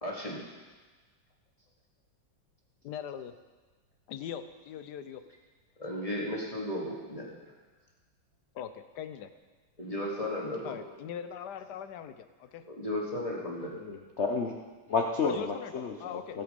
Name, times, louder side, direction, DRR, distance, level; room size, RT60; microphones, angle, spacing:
voice 1, 0.0-0.4 5.8-7.3 9.8-10.8 12.7-13.7, left 1 dB, 20° left, -3 dB, 2.3 m, -34 dB
voice 2, 2.8-3.3 4.1-5.2 8.5-9.3 10.6-12.6 15.2-16.4, left 8 dB, 65° left, 11 dB, 1.2 m, -41 dB
voice 3, 13.8-14.6 14.9-16.4, left 4 dB, 50° left, 2 dB, 0.8 m, -31 dB
17.5 x 8.1 x 5.2 m, 1.3 s
omnidirectional pair, 2.1 m